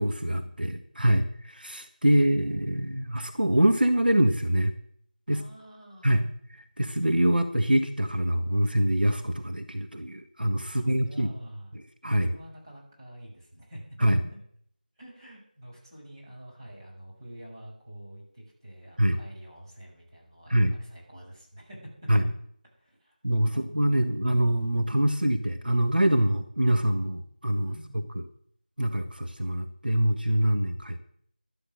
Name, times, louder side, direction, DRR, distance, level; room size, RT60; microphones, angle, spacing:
voice 1, 0.0-4.7 5.3-5.4 6.0-6.2 6.8-11.3 12.0-12.4 14.0-14.2 19.0-19.2 20.5-20.8 22.1-22.2 23.2-27.7 28.8-31.0, right 1 dB, 70° right, 7 dB, 1.5 m, -24 dB
voice 2, 2.1-3.0 5.3-6.1 10.7-13.9 14.3-14.4 15.0-21.8 22.8-24.1 27.6-28.0, right 1 dB, 30° right, -5 dB, 6.6 m, -48 dB
12.0 x 12.0 x 6.4 m, 0.64 s
figure-of-eight pair, 170°, 5 cm